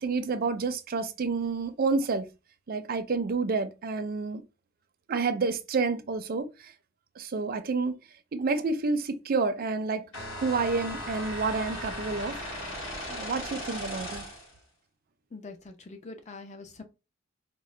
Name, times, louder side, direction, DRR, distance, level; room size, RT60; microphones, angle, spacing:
voice 1, 0.0-2.2 2.7-4.4 5.1-6.5 7.2-8.0 8.3-10.0 10.4-12.4 13.1-14.2, right 4 dB, 45° right, 0.4 m, -29 dB
sound 1, 10.1-14.6, equal, 60° left, 1.7 m, -37 dB
voice 2, 15.3-16.8, left 3 dB, 35° left, 0.6 m, -44 dB
3.7 x 2.1 x 3.1 m
head